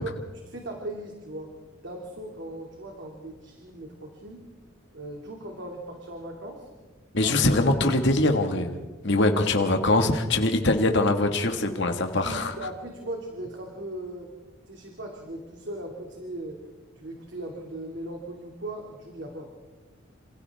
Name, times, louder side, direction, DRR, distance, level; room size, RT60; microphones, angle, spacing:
voice 1, 0.0-1.5 1.8-4.4 4.9-6.7 7.2-7.3 9.3-9.5 12.2-14.3 14.7-16.6 17.0-19.5, right 1 dB, 60° right, 1 dB, 2.6 m, -38 dB
voice 2, 7.1-8.7 9.0-12.5, left 2 dB, 60° left, 5 dB, 1.8 m, -23 dB
28.0 x 27.5 x 3.6 m, 1.3 s
head